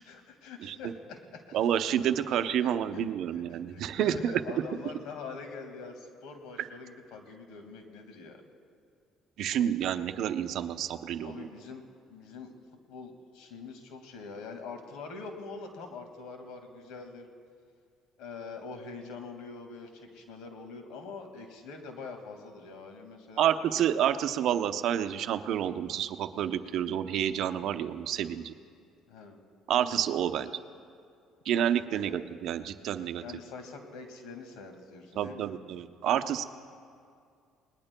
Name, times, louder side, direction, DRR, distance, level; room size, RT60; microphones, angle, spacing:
voice 1, 0.0-1.6 2.6-3.0 3.3-8.4 11.2-11.8 12.1-12.6 12.9-17.3 18.2-23.5 29.1-29.4 31.9-32.2 33.2-35.5, left 4 dB, 80° left, 5 dB, 1.9 m, -44 dB
voice 2, 1.5-4.3 6.6-6.7 9.4-11.5 23.4-28.5 29.7-30.5 31.5-33.2 35.2-36.4, right 10 dB, 65° right, 9 dB, 0.7 m, -29 dB
29.5 x 20.0 x 2.2 m, 2.3 s
supercardioid pair, 90°, 0 cm